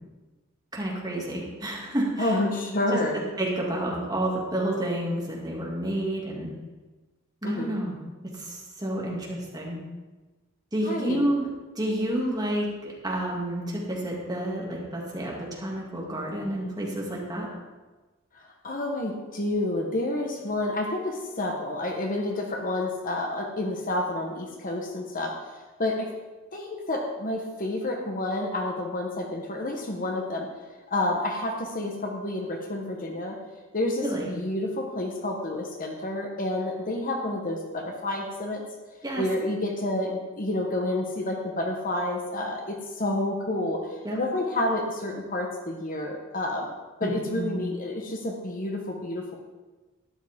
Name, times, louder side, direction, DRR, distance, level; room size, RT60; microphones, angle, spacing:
voice 1, 0.7-2.3 3.1-6.5 7.4-8.0 8.3-9.8 10.7-11.5 11.8-17.5 34.0-34.3 39.0-39.3 44.0-44.2 47.0-47.6, right 1 dB, 20° right, -3 dB, 2.4 m, -30 dB
voice 2, 2.2-3.2 7.4-7.7 10.8-11.3 18.6-25.5 25.8-26.1 26.5-30.5 30.9-33.4 33.7-38.6 39.2-46.7 47.0-49.2, left 1 dB, 40° left, 2 dB, 1.2 m, -29 dB
12.5 x 10.5 x 3.6 m, 1.2 s
head